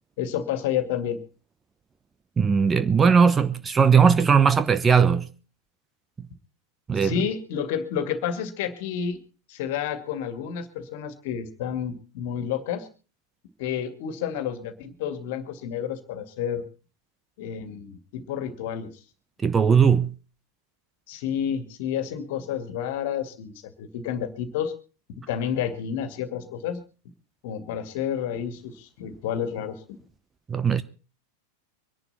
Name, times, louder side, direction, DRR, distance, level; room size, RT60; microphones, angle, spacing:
voice 1, 0.2-1.2 6.9-9.2 9.5-12.9 13.6-16.6 17.4-18.9 21.1-23.5 23.8-24.7 25.3-26.8 27.4-29.8, left 8 dB, 50° left, 2.2 m, -30 dB
voice 2, 2.4-5.3 6.9-7.2 19.4-20.1 30.5-30.8, right 6 dB, 15° right, 0.8 m, -19 dB
24.5 x 11.0 x 4.2 m
figure-of-eight pair, 90°, 0 cm